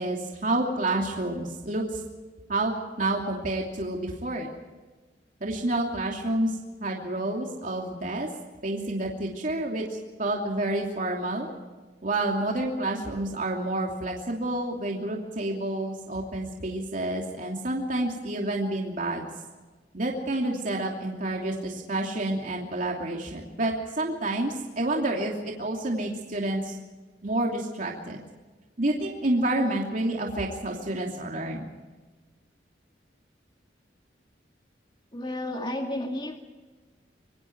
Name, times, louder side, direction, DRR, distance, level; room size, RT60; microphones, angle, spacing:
voice 1, 0.0-2.0 2.5-2.7 3.0-4.5 5.4-6.5 6.8-8.3 8.6-9.8 10.2-11.5 12.0-19.3 19.9-26.8 27.2-28.2 28.8-31.7, right 1 dB, 45° right, 0 dB, 2.8 m, -29 dB
voice 2, 35.1-36.4, left 1 dB, 25° left, 3 dB, 2.2 m, -32 dB
26.0 x 23.5 x 4.7 m, 1.3 s
head